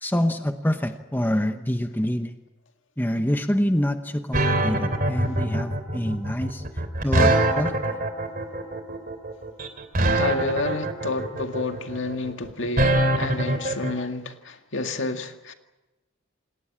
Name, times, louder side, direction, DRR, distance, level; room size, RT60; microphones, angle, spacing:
voice 1, 0.0-2.3 3.0-8.0, equal, 10° left, 1.0 m, -26 dB
sound 1, 4.3-13.9, right 1 dB, 40° right, 3.0 m, -23 dB
voice 2, 10.1-15.5, left 2 dB, 65° left, 2.0 m, -29 dB
28.0 x 19.0 x 8.8 m
head